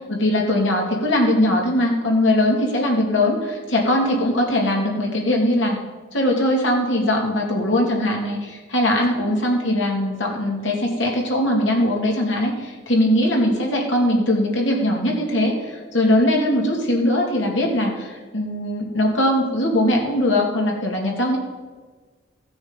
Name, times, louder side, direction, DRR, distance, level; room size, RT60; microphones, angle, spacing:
voice 1, 0.1-5.8 6.1-21.4, left 1 dB, 85° left, -1 dB, 2.5 m, -20 dB
16.0 x 6.2 x 5.2 m, 1.4 s
head